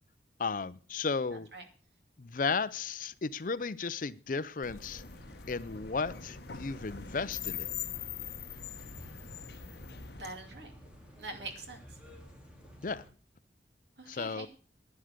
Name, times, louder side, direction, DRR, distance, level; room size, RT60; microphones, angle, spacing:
voice 1, 0.4-1.5 2.2-5.0 5.5-7.7 12.8-13.0 14.1-14.5, left 4 dB, 50° left, 0.5 m, -34 dB
voice 2, 1.3-1.6 10.2-10.7 11.2-12.0 14.0-14.5, right 2 dB, 75° right, 2.6 m, -44 dB
sound 1, 4.6-10.2, left 8 dB, 70° left, 1.1 m, -42 dB
sound 2, 4.8-13.1, equal, 5° right, 2.7 m, -52 dB
11.0 x 9.5 x 6.6 m
head